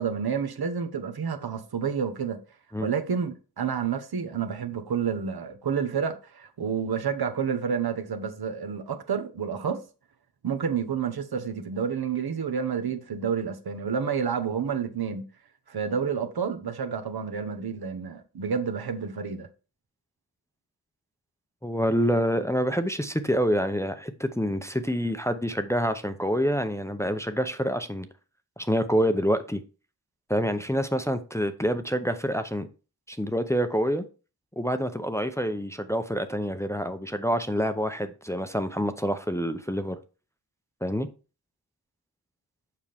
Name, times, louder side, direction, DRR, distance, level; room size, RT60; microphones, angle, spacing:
voice 1, 0.0-2.4 2.8-9.8 10.4-15.2 15.7-19.5, right 6 dB, 75° right, 1.1 m, -29 dB
voice 2, 21.6-28.1 28.6-29.6 30.3-32.7 33.1-34.0 34.6-40.0 40.8-41.1, equal, 5° left, 0.6 m, -27 dB
7.3 x 5.9 x 3.4 m
wide cardioid pair, 95°, 38 cm